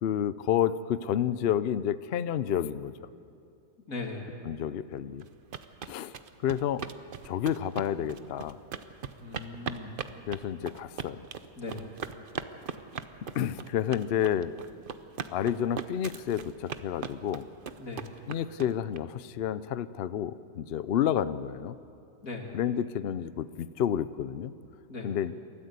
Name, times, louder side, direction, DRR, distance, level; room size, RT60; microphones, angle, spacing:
voice 1, 0.0-2.9 4.4-5.3 5.9-6.1 6.4-6.9 7.3-8.6 10.3-11.2 13.3-14.5 15.3-17.5 18.3-21.8 22.5-24.5 25.0-25.3, left 10 dB, 75° left, 15 dB, 0.5 m, -30 dB
voice 2, 3.9-4.3 9.2-9.9 11.6-11.9 17.8-18.0 22.2-22.5 24.9-25.1, left 3 dB, 55° left, 1 dB, 2.9 m, -38 dB
sound 1, 5.2-19.0, right 6 dB, 50° right, 0.6 m, -39 dB
28.5 x 13.5 x 8.1 m, 2.6 s
omnidirectional pair, 1.7 m